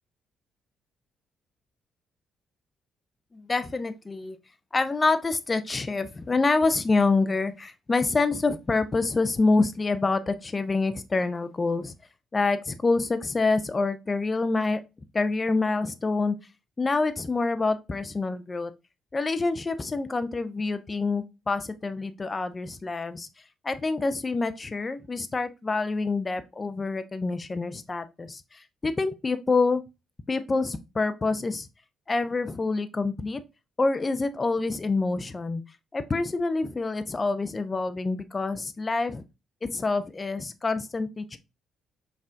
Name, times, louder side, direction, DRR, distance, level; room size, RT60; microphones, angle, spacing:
voice 1, 3.3-4.4 4.7-11.9 12.3-14.8 15.1-16.4 16.8-18.7 19.1-23.3 23.6-29.8 30.3-31.7 32.1-33.4 33.8-35.6 35.9-39.2 39.6-41.4, left 3 dB, 30° left, 0.5 m, -26 dB
5.4 x 2.4 x 2.5 m
hypercardioid pair, 45°, 0 cm